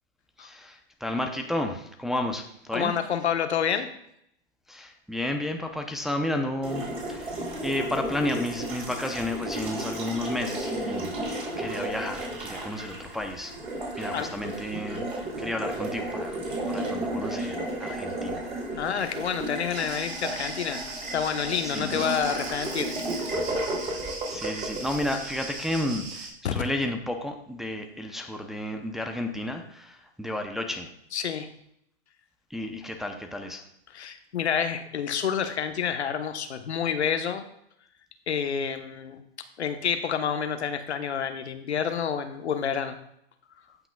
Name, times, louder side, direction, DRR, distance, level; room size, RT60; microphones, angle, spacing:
voice 1, 0.4-2.9 4.7-7.3 7.6-13.5 14.0-15.1 15.4-18.4 21.6-22.0 24.3-30.9 32.5-33.6, left 1 dB, ahead, 3 dB, 0.6 m, -32 dB
voice 2, 2.7-3.9 14.1-14.3 18.8-20.8 21.1-23.3 26.4-26.5 31.1-31.5 33.9-37.5 38.3-39.2 39.6-42.9, left 7 dB, 85° left, 7 dB, 1.1 m, -28 dB
Water tap faucet, 6.6-25.8, right 1 dB, 20° right, 3.5 m, -33 dB
sound 1, 19.7-26.3, right 3 dB, 40° right, 3.6 m, -39 dB
16.5 x 5.9 x 2.3 m, 0.73 s
hypercardioid pair, 130°, 33 cm